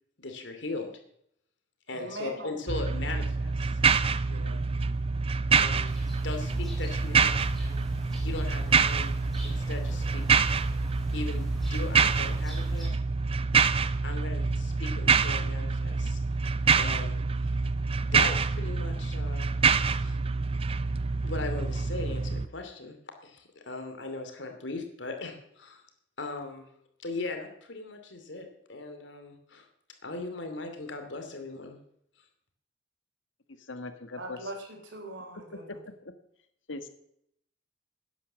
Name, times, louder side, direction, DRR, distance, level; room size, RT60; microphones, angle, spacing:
voice 1, 0.2-0.9 1.9-3.8 4.3-4.6 5.6-5.9 6.2-7.5 8.2-9.2 9.4-10.2 11.1-12.9 14.0-16.2 16.7-17.5 18.0-19.5 20.0-20.2 21.2-22.9 23.2-25.8 26.2-26.7 27.0-29.7 30.0-31.8, left 3 dB, 70° left, 5 dB, 2.6 m, -38 dB
voice 2, 1.9-2.5 34.2-35.7, right 1 dB, 70° right, 4 dB, 3.5 m, -40 dB
sound 1, 2.7-22.5, right 5 dB, 30° right, 0.4 m, -26 dB
sound 2, 5.9-12.9, equal, ahead, 3.6 m, -39 dB
voice 3, 33.7-34.4 35.5-36.1 36.7-36.9, left 2 dB, 90° left, 8 dB, 1.5 m, -40 dB
12.0 x 9.9 x 7.3 m, 0.73 s
head